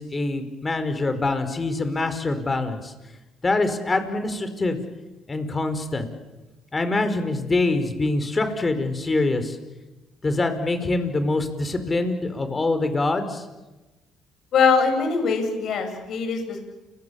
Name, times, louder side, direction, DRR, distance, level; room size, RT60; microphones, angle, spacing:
voice 1, 0.0-2.9 3.4-4.8 5.3-6.1 6.7-9.6 10.2-13.4, left 2 dB, 25° left, 9 dB, 5.0 m, -24 dB
voice 2, 14.5-16.6, left 5 dB, 65° left, 5 dB, 7.6 m, -22 dB
30.0 x 24.0 x 7.3 m, 1.1 s
cardioid pair, 85°, 0 cm